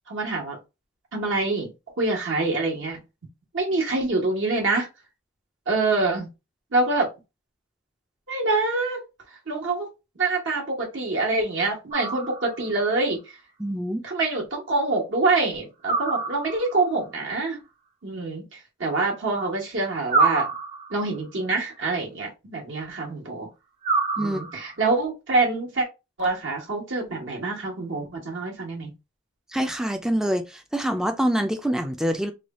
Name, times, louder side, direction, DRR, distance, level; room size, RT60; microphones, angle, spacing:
voice 1, 0.1-0.6 1.1-1.7 2.0-3.0 3.5-4.9 5.7-6.3 6.7-7.1 8.3-9.0 9.5-9.9 10.2-13.2 14.0-17.6 18.0-20.4 20.9-23.5 24.2-25.9 26.2-28.9, right 3 dB, 65° right, 1.2 m, -25 dB
sound 1, 11.9-12.8 15.8-16.9 20.1-21.2 23.8-24.8, right 4 dB, 30° right, 0.8 m, -26 dB
voice 2, 13.6-14.0 24.2-24.4 29.5-32.3, equal, 5° right, 0.3 m, -25 dB
3.1 x 2.3 x 4.0 m
head